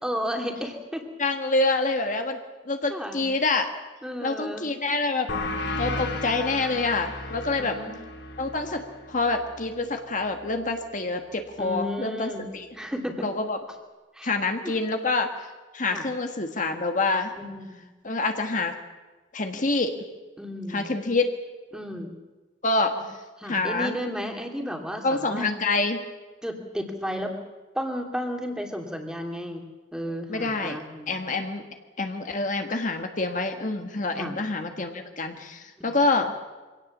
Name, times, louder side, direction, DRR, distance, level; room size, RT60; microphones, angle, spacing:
voice 1, 0.0-1.0 2.9-3.2 4.0-4.7 5.9-6.2 7.6-7.9 11.6-12.5 12.7-13.3 14.1-14.4 14.6-14.7 15.9-16.1 17.4-17.8 20.4-20.9 21.7-22.1 23.4-25.5 26.4-27.3 27.7-31.2 34.2-34.4 35.8-35.9, equal, 5° right, 3 dB, 2.5 m, -33 dB
voice 2, 1.2-2.4 2.6-3.7 4.2-5.3 5.8-7.8 8.4-8.8 9.1-12.7 13.2-13.6 14.2-15.3 15.7-17.3 18.0-18.7 19.3-20.0 20.7-21.4 22.6-23.0 23.5-23.9 25.0-26.0 30.3-30.8 31.1-31.6 32.0-36.3, left 3 dB, 45° left, 5 dB, 1.5 m, -26 dB
sound 1, 5.3-10.5, left 2 dB, 65° left, 3.5 m, -35 dB
24.0 x 17.5 x 7.3 m, 1.2 s
head